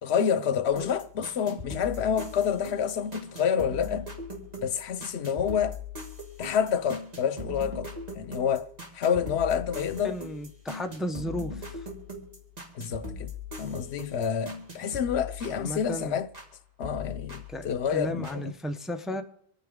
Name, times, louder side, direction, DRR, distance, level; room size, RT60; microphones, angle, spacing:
voice 1, 0.0-4.1 4.6-5.8 6.4-8.7 8.9-10.2 12.7-13.3 13.6-16.3 16.8-18.5, left 7 dB, 80° left, 1.0 m, -28 dB
sound 1, 0.7-16.5 16.8-18.4, left 3 dB, 40° right, 2.5 m, -41 dB
voice 2, 10.0-11.9 15.5-16.2 17.5-17.7 17.9-19.2, equal, ahead, 0.6 m, -34 dB
26.5 x 9.3 x 3.6 m
omnidirectional pair, 1.1 m